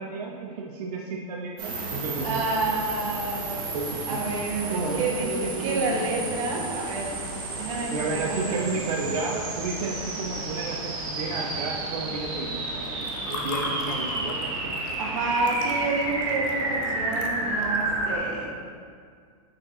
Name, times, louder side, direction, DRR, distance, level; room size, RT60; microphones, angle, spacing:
voice 1, 0.0-2.4 3.7-4.2 4.7-6.5 7.9-12.9 13.3-14.8, right 3 dB, 85° right, -2 dB, 0.8 m, -32 dB
sound 1, 1.6-18.2, right 2 dB, 35° right, 1.6 m, -31 dB
voice 2, 2.2-3.7 4.1-7.1 7.6-8.7 15.0-18.6, right 3 dB, 55° right, -1 dB, 1.2 m, -29 dB
Water / Fill (with liquid), 12.7-17.8, left 3 dB, 30° left, 0.6 m, -38 dB
6.0 x 5.0 x 3.6 m, 2.1 s
supercardioid pair, 170°, 20 cm